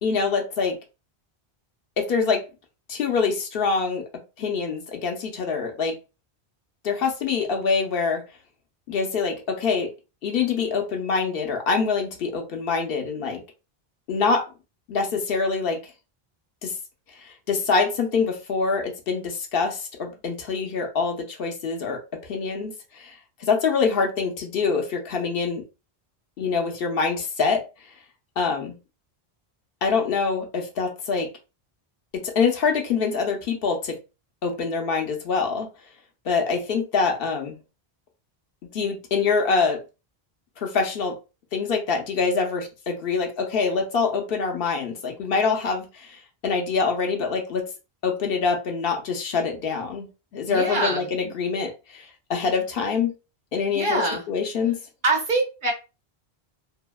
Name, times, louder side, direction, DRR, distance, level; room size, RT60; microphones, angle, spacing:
voice 1, 0.0-0.8 2.0-2.4 2.9-4.0 4.4-5.9 6.8-8.2 8.9-9.9 10.2-13.4 14.1-14.5 14.9-15.8 16.6-16.7 17.2-23.1 23.4-25.6 26.4-27.6 28.4-28.8 29.8-31.3 32.1-34.0 34.4-35.7 36.2-37.6 38.7-39.8 40.6-41.1 41.5-47.7 48.0-50.1 50.3-53.1 53.5-54.0 54.3-54.8, left 5 dB, 70° left, 3 dB, 0.8 m, -25 dB
voice 2, 50.5-51.1 53.7-54.2 55.0-55.7, right 2 dB, 55° right, 2 dB, 0.9 m, -24 dB
2.7 x 2.0 x 2.2 m, 0.29 s
omnidirectional pair, 1.0 m